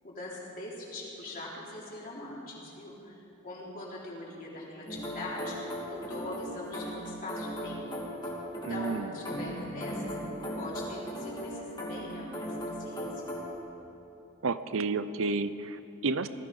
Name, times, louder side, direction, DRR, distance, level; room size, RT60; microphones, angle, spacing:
voice 1, 0.0-7.8 8.2-10.1 10.6-13.4, left 2 dB, 40° left, -5 dB, 3.8 m, -42 dB
sound 1, 4.9-13.6, equal, 20° left, 3.0 m, -38 dB
voice 2, 8.6-9.1 14.4-16.3, right 3 dB, 65° right, 13 dB, 0.6 m, -31 dB
19.0 x 14.0 x 5.4 m, 2.8 s
head